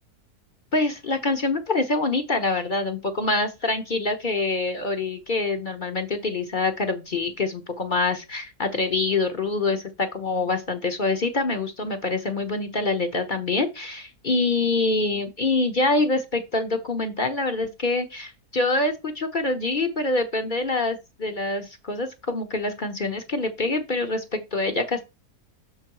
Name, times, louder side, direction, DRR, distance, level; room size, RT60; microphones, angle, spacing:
voice 1, 0.7-25.0, left 3 dB, 40° left, 6 dB, 0.8 m, -25 dB
6.7 x 5.2 x 4.7 m, 0.26 s
omnidirectional pair, 1.7 m